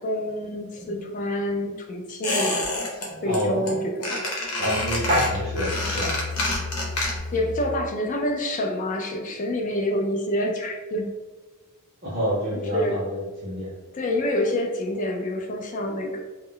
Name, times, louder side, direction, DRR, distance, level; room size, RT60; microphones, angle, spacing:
voice 1, 0.0-2.8 3.2-4.2 7.3-11.1 12.5-13.0 13.9-16.2, left 1 dB, 35° left, 2 dB, 0.4 m, -27 dB
voice 2, 0.7-1.4 3.0-3.8 4.6-6.2 12.0-13.7, equal, 40° right, -6 dB, 0.6 m, -28 dB
Squeak, 2.2-3.1 3.3-3.7 4.0-7.4 7.7-7.8, left 2 dB, 85° left, 0.8 m, -28 dB
Musical instrument, 4.5-8.0, left 4 dB, 75° right, 0.7 m, -34 dB
2.2 x 2.0 x 3.7 m, 1.2 s
head